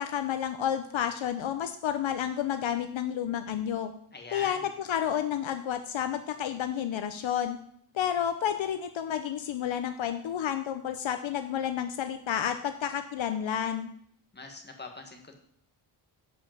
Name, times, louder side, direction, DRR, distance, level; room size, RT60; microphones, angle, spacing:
voice 1, 0.0-3.9 4.3-7.6 7.9-13.9, left 9 dB, 65° left, 8 dB, 0.8 m, -30 dB
voice 2, 4.1-4.7 14.3-15.4, left 3 dB, 20° left, 3 dB, 1.7 m, -43 dB
11.0 x 5.2 x 7.3 m, 0.64 s
wide cardioid pair, 150°, 50 cm